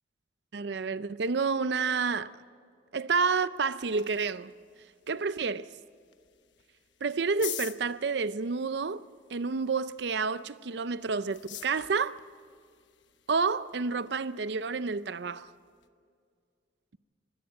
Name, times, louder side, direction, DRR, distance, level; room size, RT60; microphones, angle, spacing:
voice 1, 0.5-2.3 2.9-4.5 5.1-5.7 7.0-9.0 9.3-12.2 13.3-15.5, right 4 dB, 65° right, 0.5 m, -29 dB
sound 1, 3.3-15.9, left 13 dB, 80° left, 1.1 m, -48 dB
23.5 x 17.5 x 7.6 m
head